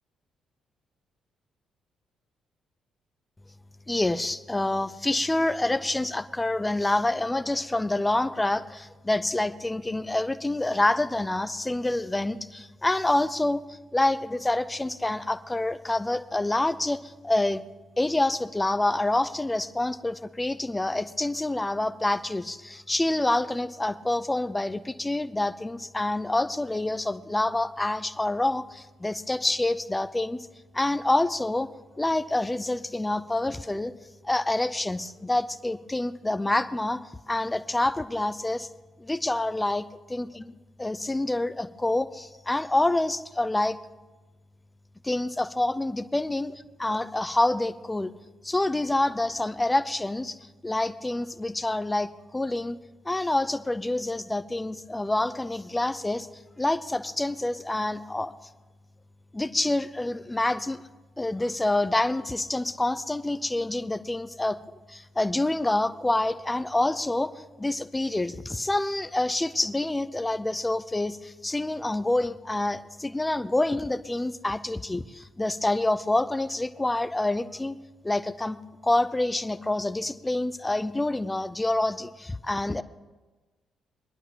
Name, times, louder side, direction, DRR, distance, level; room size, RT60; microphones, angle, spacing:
voice 1, 3.9-17.7 18.0-30.4 30.7-31.7 32.0-33.9 34.2-37.0 37.3-38.7 39.0-43.8 45.0-48.1 48.4-50.4 50.6-52.8 53.0-56.3 56.6-58.3 59.3-60.8 61.2-64.6 64.9-77.8 78.0-78.6 78.8-82.8, left 2 dB, 15° left, 13 dB, 0.6 m, -27 dB
24.0 x 10.5 x 2.9 m, 1.2 s
hypercardioid pair, 40°, 0 cm